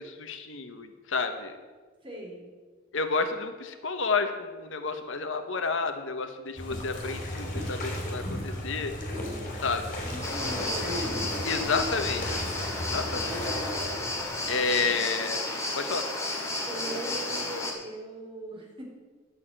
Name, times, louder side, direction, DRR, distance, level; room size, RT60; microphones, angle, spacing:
voice 1, 0.0-1.5 2.9-8.9 9.6-9.9 11.4-12.4 12.8-13.4 14.5-15.4 15.7-16.0, left 4 dB, 70° left, 7 dB, 1.0 m, -30 dB
voice 2, 2.0-2.5 9.9-11.3 12.8-13.5 16.6-18.8, right 1 dB, 25° right, -2 dB, 3.5 m, -41 dB
sound 1, 6.6-14.8, left 1 dB, 40° left, 3.4 m, -35 dB
sound 2, 10.2-17.7, left 2 dB, 15° left, 2.2 m, -32 dB
11.5 x 6.5 x 8.8 m, 1.4 s
head